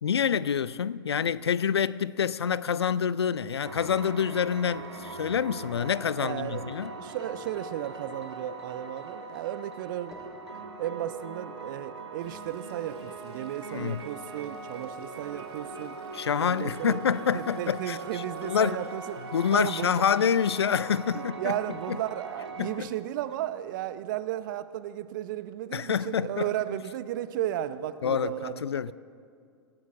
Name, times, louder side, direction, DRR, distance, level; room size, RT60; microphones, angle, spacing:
voice 1, 0.0-6.9 13.7-14.0 16.1-18.8 19.3-21.5 21.9-22.0 22.6-22.9 25.7-26.5 28.0-28.9, left 7 dB, 70° left, 0.4 m, -27 dB
sound 1, 3.6-22.8, right 3 dB, 80° right, 1.6 m, -41 dB
voice 2, 6.2-10.2 10.8-16.0 16.4-17.0 17.3-20.0 21.1-28.6 28.9-29.0, right 12 dB, 50° right, 0.7 m, -34 dB
sound 2, 7.0-8.6 9.4-13.3, left 2 dB, 25° left, 4.7 m, -58 dB
Stream, 12.2-20.2, equal, 90° left, 3.4 m, -62 dB
26.0 x 16.5 x 2.5 m
figure-of-eight pair, 95°, 14 cm